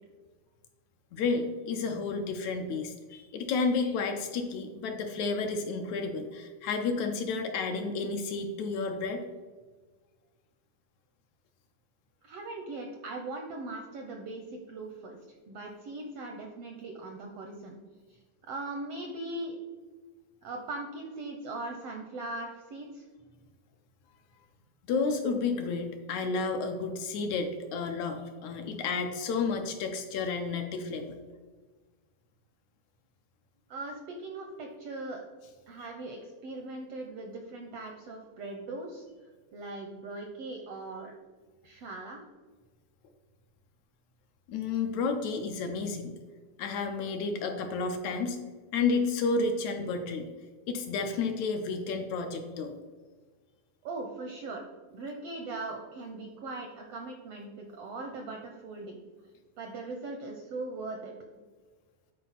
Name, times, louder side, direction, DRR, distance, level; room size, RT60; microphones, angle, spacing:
voice 1, 1.1-9.2 24.9-31.2 44.5-46.2 46.6-48.4 48.7-50.3 50.7-52.7, left 4 dB, 75° left, 5 dB, 1.8 m, -31 dB
voice 2, 12.2-15.2 15.5-17.8 18.1-19.6 20.4-23.1 33.7-35.2 35.7-39.1 39.5-41.1 41.6-42.2 53.8-54.6 54.9-59.0 59.6-61.1, right 2 dB, 80° right, 3 dB, 1.4 m, -40 dB
10.0 x 4.4 x 4.0 m, 1.4 s
omnidirectional pair, 3.6 m